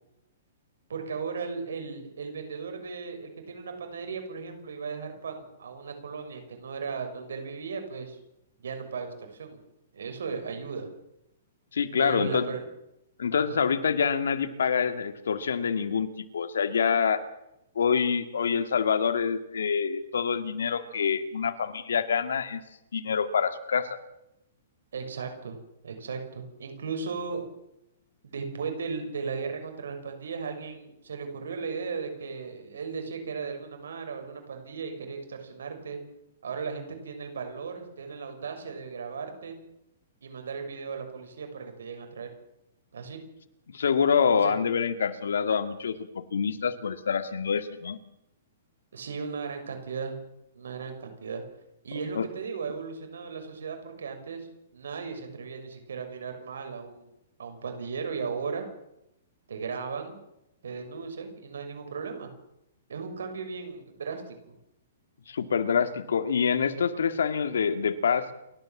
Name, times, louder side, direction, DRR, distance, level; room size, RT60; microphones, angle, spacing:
voice 1, 0.9-8.2 8.6-9.6 9.9-10.9 12.0-12.7 13.3-13.6 24.9-25.6 25.8-27.5 28.2-36.0 36.4-39.6 40.2-42.3 42.9-43.2 44.4-44.6 48.9-50.2 50.5-51.4 51.8-54.5 54.7-57.1 57.4-58.6 59.5-60.2 60.6-62.3 62.9-64.5, right 5 dB, 85° right, 5 dB, 6.3 m, -36 dB
voice 2, 11.7-12.6 13.2-17.2 17.8-22.6 22.9-24.0 43.7-48.0 52.2-52.3 65.3-68.3, left 6 dB, 85° left, 10 dB, 2.1 m, -26 dB
29.0 x 13.0 x 7.4 m, 0.85 s
hypercardioid pair, 155°, 0 cm